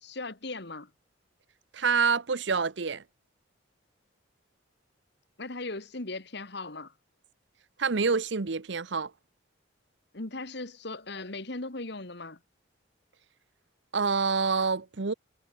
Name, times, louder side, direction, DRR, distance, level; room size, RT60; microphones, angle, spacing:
voice 1, 0.0-0.9 5.4-6.9 10.1-12.4, left 2 dB, 55° left, 1.9 m, -38 dB
voice 2, 1.7-3.0 7.8-9.1 13.9-15.1, right 5 dB, 65° right, 0.8 m, -27 dB
head